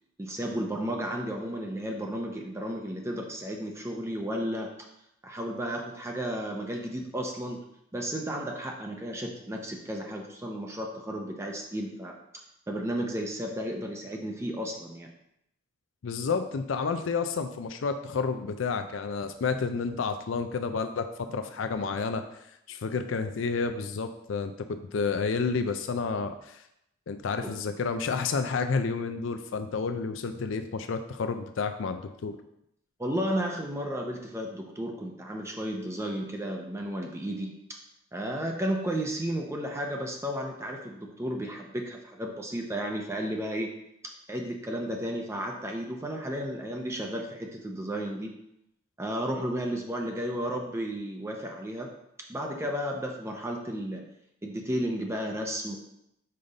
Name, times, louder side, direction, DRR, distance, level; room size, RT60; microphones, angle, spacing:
voice 1, 0.2-4.9 5.2-7.6 7.9-12.2 12.7-15.1 33.0-37.5 38.1-43.7 44.3-48.3 49.0-51.9 52.3-54.0 54.4-55.8, equal, 15° right, 1 dB, 0.6 m, -33 dB
voice 2, 16.0-22.3 22.7-26.6 27.1-32.4, left 5 dB, 75° left, 8 dB, 0.4 m, -30 dB
5.5 x 5.1 x 3.9 m, 0.80 s
head